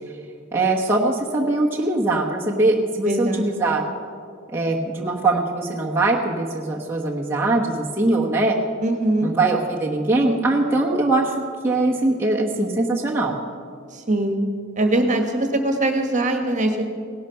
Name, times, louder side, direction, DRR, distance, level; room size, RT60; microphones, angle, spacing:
voice 1, 0.5-3.8 4.5-8.6 9.2-11.3 11.6-13.4, right 2 dB, 10° right, -4 dB, 1.1 m, -21 dB
voice 2, 3.0-3.5 8.8-9.3 13.9-14.4 14.8-16.8, right 1 dB, 35° right, 5 dB, 1.5 m, -22 dB
17.5 x 12.0 x 5.7 m, 2.3 s
head